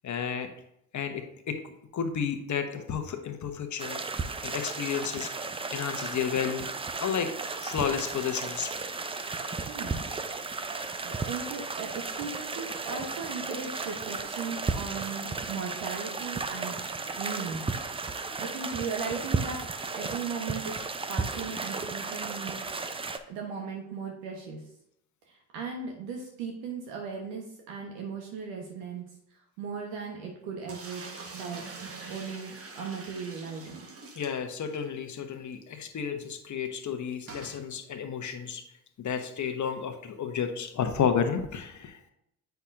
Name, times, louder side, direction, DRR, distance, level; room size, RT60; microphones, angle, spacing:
voice 1, 0.0-0.5 0.9-1.6 1.9-4.0 4.4-5.3 5.7-6.7 7.0-7.3 7.6-8.7 34.2-38.6 39.0-42.0, left 7 dB, 40° left, 6 dB, 1.0 m, -31 dB
sound 1, 3.8-23.2, right 4 dB, 15° right, 0.4 m, -34 dB
voice 2, 9.7-10.0 11.0-16.8 17.2-17.7 18.1-19.6 19.9-20.8 21.1-22.8 23.3-24.6 25.3-29.0 29.3-31.1 31.3-33.8, right 5 dB, 70° right, 1 dB, 1.1 m, -37 dB
sound 2, 30.7-34.9 35.2-35.3 35.5-35.6 37.3-37.6, right 4 dB, 30° right, 1.2 m, -44 dB
8.0 x 5.8 x 2.5 m, 0.77 s
hypercardioid pair, 60°, 45 cm